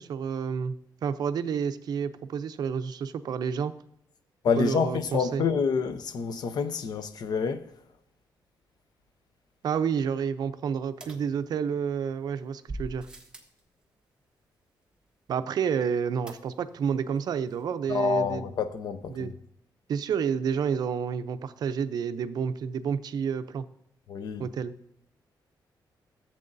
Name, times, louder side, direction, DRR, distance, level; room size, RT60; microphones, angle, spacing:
voice 1, 0.0-3.7 4.6-5.5 9.6-13.1 15.3-18.5 19.1-19.4 19.9-23.7 24.4-24.8, right 7 dB, 55° right, 0.5 m, -30 dB
voice 2, 4.4-7.6 17.9-19.3 24.1-24.5, left 5 dB, 55° left, 0.7 m, -27 dB
sound 1, 11.0-12.0 12.7-13.6 16.3-16.9 17.2-17.3 17.5-17.6, right 2 dB, 10° right, 1.1 m, -42 dB
14.5 x 7.6 x 2.6 m
wide cardioid pair, 170°, 8 cm